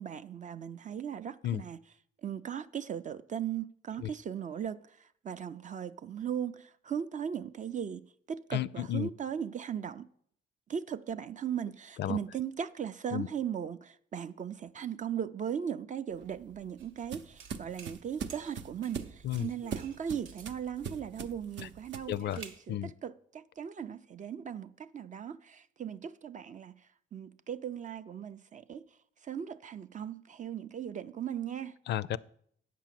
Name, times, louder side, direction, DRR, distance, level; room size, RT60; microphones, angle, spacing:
voice 1, 0.0-1.8 2.2-10.1 10.7-28.9 29.2-31.8, right 8 dB, 40° right, 0.4 m, -38 dB
voice 2, 8.5-9.1 12.0-12.2 13.1-13.3 19.2-19.5 22.1-22.4 22.7-22.9 31.9-32.2, left 12 dB, 60° left, 0.4 m, -32 dB
sound 1, 16.1-22.2, right 6 dB, 70° right, 0.8 m, -42 dB
sound 2, 16.8-17.1 17.4-18.0 18.3-19.1 19.4-20.6 21.6-22.7, right 6 dB, 90° right, 1.1 m, -52 dB
8.3 x 6.0 x 7.5 m
cardioid pair, 90°, 20 cm